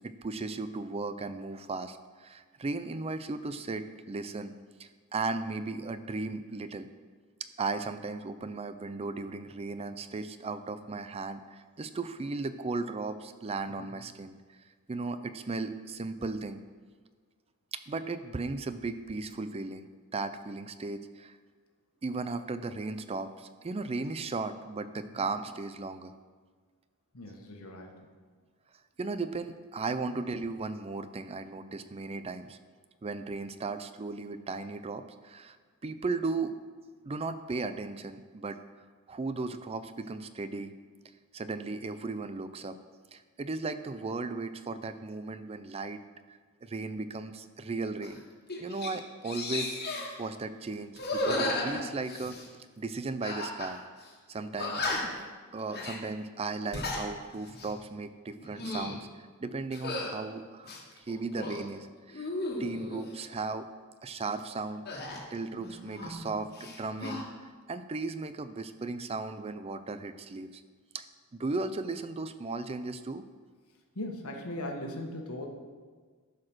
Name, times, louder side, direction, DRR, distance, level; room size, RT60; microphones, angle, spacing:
voice 1, 0.0-4.5 4.8-6.9 7.6-14.4 14.9-16.6 17.7-19.9 20.1-21.4 22.0-26.1 29.0-32.6 33.0-35.6 35.8-36.6 37.1-38.6 39.1-40.7 41.3-42.8 43.1-46.0 46.6-48.2 48.6-49.8 50.2-52.4 52.8-53.8 54.3-54.9 55.5-62.3 62.6-63.7 64.0-64.8 65.3-67.3 67.7-70.6 70.9-71.0 71.4-73.2, right 3 dB, 25° right, 11 dB, 0.4 m, -36 dB
voice 2, 27.1-27.9 30.0-30.2 51.4-51.5 73.9-75.5, left 1 dB, 75° left, 2 dB, 1.4 m, -39 dB
sound 1, 48.0-48.2 48.5-48.9 49.2-50.1 50.9-52.5 53.2-53.7 54.0-54.1 54.6-55.2 55.7-56.0 56.5-57.0 57.5-57.7 58.4-59.0 59.7-60.1 60.6-61.6 62.1-63.1 64.9-66.3 66.5-67.2, left 2 dB, 50° left, 1.6 m, -34 dB
11.5 x 4.9 x 6.1 m, 1.5 s
head